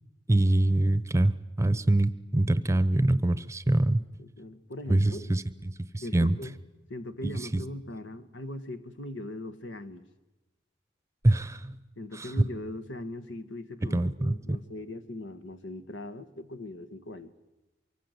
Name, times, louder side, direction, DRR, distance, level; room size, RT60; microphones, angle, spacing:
voice 1, 0.3-4.0 4.9-5.4 5.9-6.4 7.2-7.6 11.2-11.8 12.1-12.3 13.8-14.3, right 1 dB, 15° right, 15 dB, 0.8 m, -24 dB
voice 2, 4.2-5.4 6.0-6.5 6.9-10.0 12.0-17.3, left 1 dB, 80° left, 11 dB, 1.5 m, -40 dB
24.0 x 24.0 x 8.1 m, 1.1 s
head